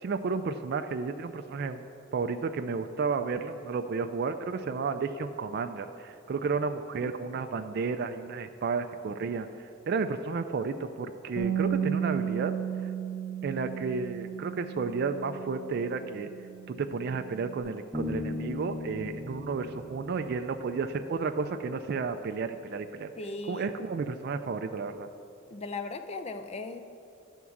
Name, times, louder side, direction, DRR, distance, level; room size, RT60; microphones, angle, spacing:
voice 1, 0.0-1.8 2.1-9.5 9.9-12.5 12.8-12.9 13.4-16.3 16.7-23.1 23.5-25.1, right 4 dB, 50° right, 7 dB, 0.3 m, -32 dB
Bass guitar, 11.4-17.6, right 9 dB, 75° left, 1.0 m, -34 dB
Bass guitar 2, 17.9-21.4, left 2 dB, 10° right, 0.7 m, -38 dB
voice 2, 23.2-23.7 25.5-26.8, left 3 dB, 30° left, 8 dB, 0.4 m, -37 dB
10.5 x 3.6 x 7.1 m, 2.6 s
head